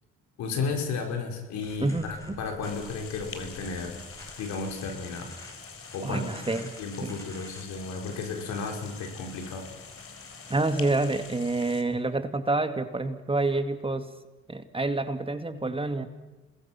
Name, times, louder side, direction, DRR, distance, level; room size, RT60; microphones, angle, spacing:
voice 1, 0.4-4.0 4.4-5.3 5.9-6.3 6.8-9.7, left 4 dB, 70° left, 3 dB, 4.8 m, -33 dB
sound 1, 1.6-11.4, left 1 dB, 10° left, 7.4 m, -48 dB
voice 2, 1.8-2.4 6.0-6.7 7.0-7.1 10.5-14.1 14.5-16.1, right 2 dB, 20° right, 9 dB, 2.0 m, -28 dB
sound 2, 2.6-11.8, left 6 dB, 50° left, 3.6 m, -46 dB
28.0 x 21.0 x 5.9 m, 1.1 s
hypercardioid pair, 60°, 29 cm